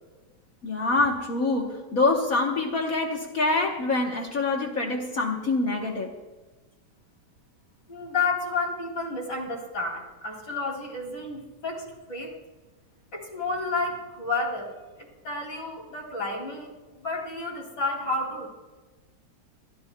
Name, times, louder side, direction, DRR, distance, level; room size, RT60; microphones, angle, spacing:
voice 1, 0.6-6.1, left 3 dB, 55° left, 0 dB, 1.6 m, -25 dB
voice 2, 7.9-12.3 13.1-14.7 15.0-16.7 17.0-18.5, left 3 dB, 75° left, 0 dB, 3.4 m, -31 dB
23.5 x 12.5 x 2.3 m, 1.2 s
omnidirectional pair, 1.9 m